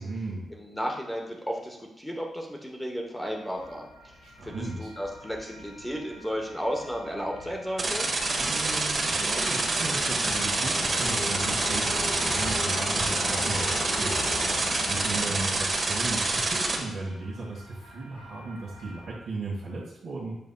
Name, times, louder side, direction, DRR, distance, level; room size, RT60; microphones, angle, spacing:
voice 1, 0.0-0.5 4.2-4.9 8.4-20.4, right 3 dB, 70° right, -8 dB, 1.6 m, -36 dB
voice 2, 0.5-3.9 4.4-8.1, equal, 5° left, 0 dB, 0.9 m, -33 dB
sound 1, 3.3-19.2, left 3 dB, 80° left, 1.2 m, -40 dB
sound 2, 7.8-16.7, right 2 dB, 40° right, 1.2 m, -27 dB
8.4 x 5.6 x 2.2 m, 0.93 s
wide cardioid pair, 135°, 0 cm